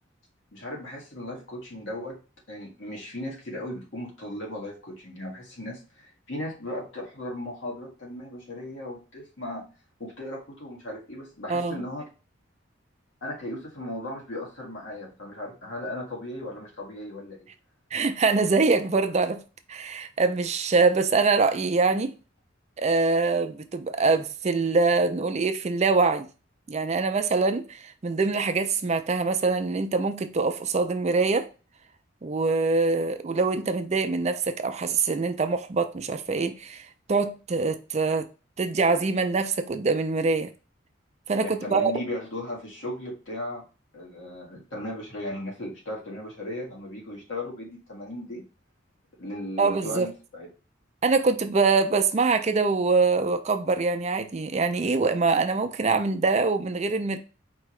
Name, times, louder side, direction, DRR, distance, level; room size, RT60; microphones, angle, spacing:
voice 1, 0.5-2.2 2.5-9.6 10.0-12.0 13.2-17.5 41.4-43.6 43.9-48.4 49.2-50.5, left 1 dB, 75° left, 1.6 m, -36 dB
voice 2, 11.5-11.8 17.9-19.4 19.7-22.1 22.8-26.3 26.7-31.5 32.2-38.3 38.6-40.5 41.3-41.9 49.6-50.1 51.0-57.2, right 4 dB, 35° right, 0.4 m, -24 dB
4.6 x 2.9 x 3.1 m
head